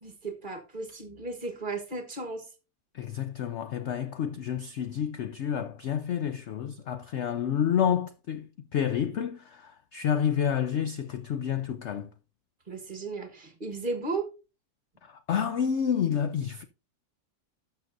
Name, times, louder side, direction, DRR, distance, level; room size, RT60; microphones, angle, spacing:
voice 1, 0.0-2.5 12.7-14.3, right 3 dB, 30° right, 1.4 m, -35 dB
voice 2, 2.9-12.1 15.0-16.6, left 8 dB, 80° left, 0.6 m, -29 dB
12.5 x 6.6 x 2.6 m
omnidirectional pair, 1.8 m